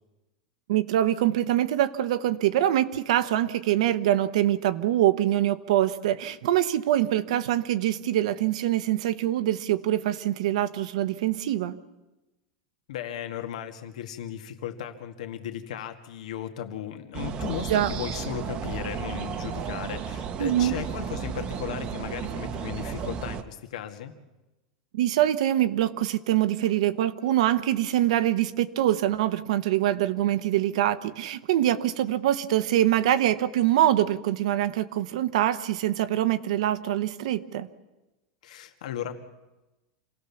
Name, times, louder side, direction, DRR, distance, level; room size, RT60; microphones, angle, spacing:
voice 1, 0.7-11.7 17.7-17.9 20.4-20.8 24.9-37.7, right 12 dB, 70° right, 13 dB, 1.1 m, -24 dB
voice 2, 12.9-24.1 38.4-39.2, left 10 dB, 80° left, 6 dB, 2.0 m, -36 dB
sound 1, 17.1-23.4, right 7 dB, 30° right, 1.0 m, -33 dB
27.0 x 17.0 x 7.1 m, 1.0 s
supercardioid pair, 165°, 4 cm